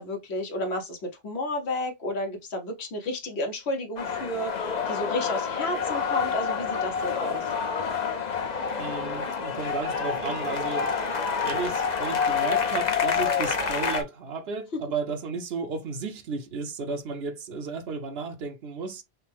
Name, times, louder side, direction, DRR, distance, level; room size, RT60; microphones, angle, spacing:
voice 1, 0.0-7.5, left 1 dB, 80° left, 1.4 m, -32 dB
sound 1, 4.0-14.0, left 6 dB, 45° left, 0.8 m, -28 dB
voice 2, 8.8-11.0 11.4-19.0, right 4 dB, 70° right, 1.0 m, -33 dB
5.7 x 2.2 x 3.4 m
omnidirectional pair, 1.1 m